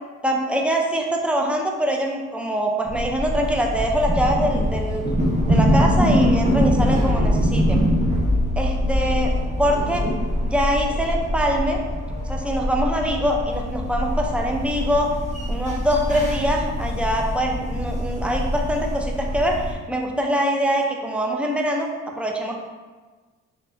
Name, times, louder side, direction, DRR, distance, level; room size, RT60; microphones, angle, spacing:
voice 1, 0.2-5.0 5.5-7.8 8.6-9.3 9.6-10.0 10.4-11.8 12.3-15.1 15.5-21.9 22.2-22.5, equal, 5° right, 1 dB, 0.4 m, -23 dB
sound 1, 2.9-19.7, equal, 25° right, 0.8 m, -23 dB
3.4 x 3.3 x 2.5 m, 1.3 s
cardioid pair, 90°, 30 cm